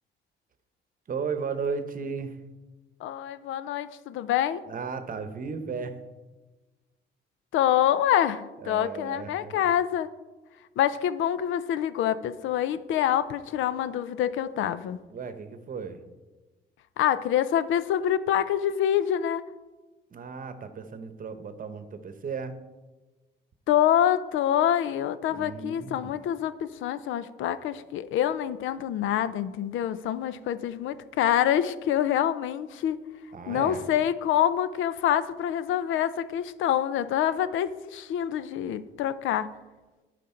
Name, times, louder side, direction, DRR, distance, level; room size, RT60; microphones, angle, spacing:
voice 1, 1.1-2.4 4.7-6.0 8.6-9.5 15.1-16.0 20.1-22.6 25.3-26.1 33.3-33.9, right 5 dB, 45° right, 10 dB, 0.9 m, -35 dB
voice 2, 3.0-4.6 7.5-10.1 10.8-15.0 17.0-19.4 23.7-33.0 33.5-39.5, left 10 dB, 80° left, 15 dB, 0.5 m, -26 dB
11.0 x 5.1 x 4.4 m, 1.2 s
cardioid pair, 90°, 20 cm